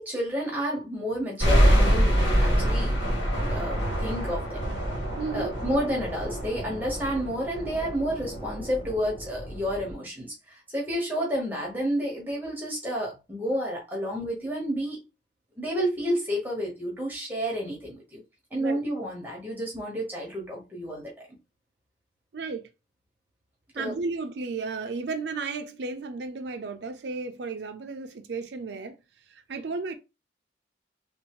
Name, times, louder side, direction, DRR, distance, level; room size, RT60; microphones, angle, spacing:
voice 1, 0.0-3.0 3.3-4.6 5.3-15.0 15.6-18.2 18.5-21.3 23.7-23.9, equal, 10° right, 1.1 m, -30 dB
sound 1, 1.4-9.9, equal, 80° left, 1.7 m, -26 dB
voice 2, 5.2-5.5 18.6-18.8 22.3-22.6 23.7-28.9 29.3-29.9, right 4 dB, 70° right, 0.5 m, -33 dB
3.4 x 2.6 x 3.0 m
head